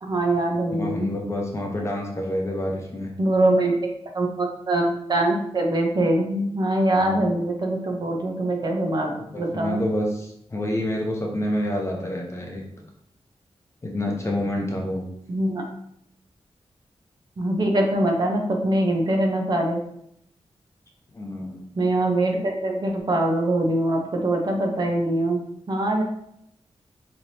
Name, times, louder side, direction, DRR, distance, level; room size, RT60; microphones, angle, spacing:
voice 1, 0.0-1.1 3.2-3.7 4.1-9.8 15.3-15.6 17.4-19.8 21.8-25.4 25.7-26.0, right 1 dB, 40° right, 1 dB, 0.6 m, -23 dB
voice 2, 0.7-3.1 6.9-7.2 9.3-12.6 13.8-15.0 21.1-21.6, left 1 dB, 25° left, -1 dB, 0.7 m, -28 dB
4.1 x 3.2 x 2.7 m, 0.74 s
wide cardioid pair, 155°, 11 cm